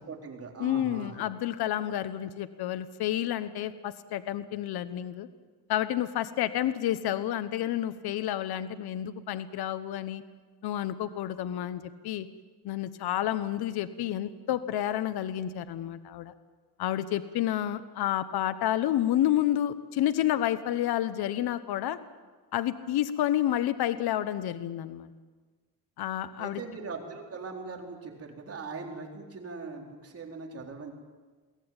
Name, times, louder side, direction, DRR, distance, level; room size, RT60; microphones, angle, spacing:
voice 1, 0.1-1.2 26.4-30.9, right 4 dB, 35° right, 1 dB, 4.2 m, -40 dB
voice 2, 0.6-5.3 5.7-10.2 10.6-12.3 12.6-16.3 16.8-22.0 22.5-25.1 26.0-26.6, left 12 dB, 70° left, 13 dB, 1.1 m, -30 dB
22.5 x 17.0 x 9.0 m, 1.4 s
cardioid pair, 115°, 39 cm